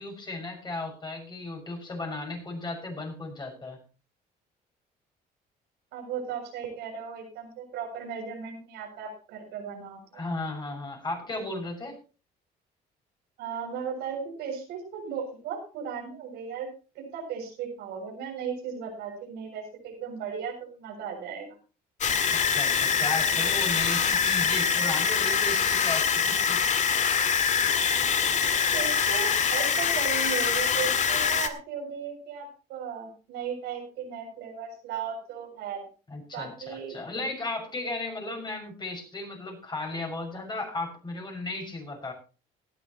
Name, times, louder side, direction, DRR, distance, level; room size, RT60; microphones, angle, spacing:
voice 1, 0.0-3.8 10.1-12.0 22.3-26.6 36.1-42.1, left 2 dB, 25° left, 2 dB, 6.4 m, -35 dB
voice 2, 5.9-10.0 13.4-16.7 16.9-21.6 28.7-35.8 36.3-37.0, right 6 dB, 90° right, 1 dB, 7.3 m, -36 dB
sound 1, 22.0-31.5, left 6 dB, 45° left, 1.9 m, -24 dB
18.5 x 12.5 x 3.1 m, 0.34 s
cardioid pair, 110°, 17 cm